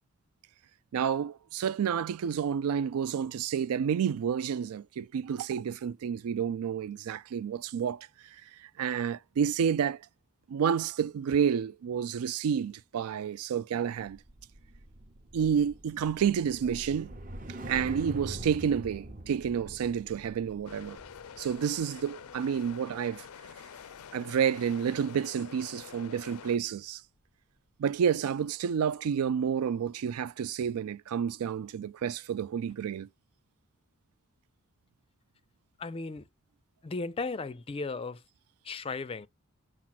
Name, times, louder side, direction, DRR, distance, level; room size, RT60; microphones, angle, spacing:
voice 1, 0.9-8.1 8.6-10.0 10.5-14.2 15.3-17.1 17.7-21.0 21.4-23.2 24.1-27.0 27.8-33.1, right 7 dB, 85° right, 0.3 m, -30 dB
sound 1, 14.0-24.4 24.7-25.0, right 1 dB, 35° right, 0.7 m, -45 dB
sound 2, 20.7-26.6, left 7 dB, 85° left, 0.4 m, -47 dB
voice 2, 35.8-36.3 36.8-38.2 38.6-39.3, left 3 dB, 25° left, 0.4 m, -35 dB
7.2 x 2.5 x 5.7 m
head